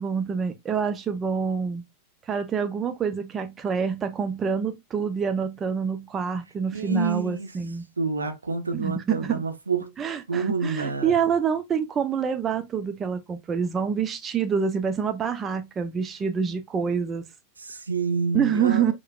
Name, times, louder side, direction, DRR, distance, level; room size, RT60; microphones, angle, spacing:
voice 1, 0.0-1.8 2.3-7.8 8.7-9.4 10.0-17.2 18.3-18.9, right 6 dB, 25° right, 0.7 m, -26 dB
voice 2, 6.7-7.5 8.0-9.9 10.3-11.2 17.6-18.9, right 4 dB, 75° right, 1.0 m, -28 dB
6.7 x 3.2 x 2.3 m
figure-of-eight pair, 90°, 0 cm